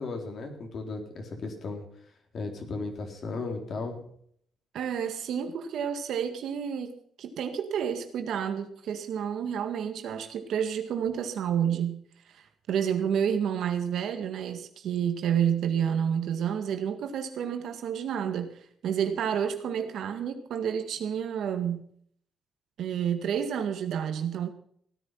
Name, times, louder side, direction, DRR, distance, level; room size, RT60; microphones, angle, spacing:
voice 1, 0.0-1.9 2.3-4.0, left 3 dB, 55° left, 3 dB, 3.9 m, -35 dB
voice 2, 4.7-12.0 12.3-12.4 12.7-18.5 18.8-21.8 22.8-24.5, right 8 dB, 75° right, 7 dB, 1.9 m, -29 dB
16.5 x 10.0 x 5.7 m, 0.64 s
cardioid pair, 90°, 0 cm